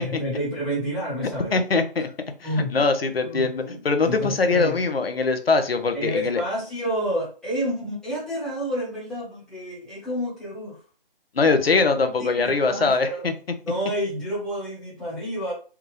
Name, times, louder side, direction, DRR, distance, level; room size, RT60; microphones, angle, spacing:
voice 1, 0.0-1.5 2.4-2.9 3.3-4.8 5.9-10.8 12.2-13.3 13.6-15.5, equal, ahead, -9 dB, 1.1 m, -29 dB
voice 2, 1.5-2.1 2.4-6.4 11.3-13.3, left 4 dB, 80° left, 7 dB, 0.8 m, -22 dB
3.5 x 2.4 x 3.2 m, 0.38 s
figure-of-eight pair, 145°, 29 cm